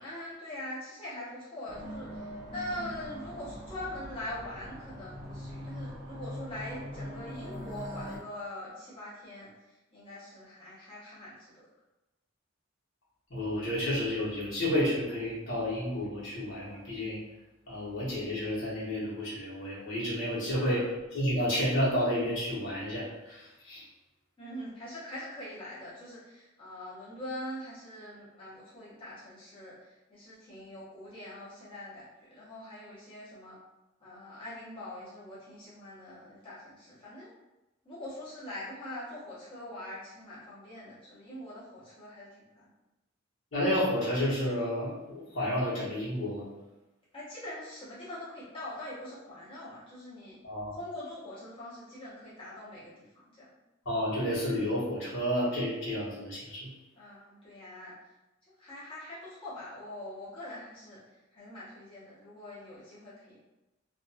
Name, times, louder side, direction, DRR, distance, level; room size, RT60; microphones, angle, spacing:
voice 1, 0.0-11.7 20.5-20.9 24.4-32.0 32.3-33.6 34.0-37.3 37.8-42.7 47.1-50.4 50.7-53.5 57.0-57.9 58.6-61.0 61.3-63.4, left 1 dB, 25° left, -10 dB, 0.9 m, -43 dB
sound 1, 1.7-8.2, equal, 20° right, 0.8 m, -42 dB
voice 2, 13.3-17.2 17.7-20.8 21.1-23.8 43.5-46.4 50.4-50.7 53.8-56.7, equal, 70° left, -9 dB, 1.2 m, -31 dB
2.7 x 2.3 x 2.7 m, 1.0 s
head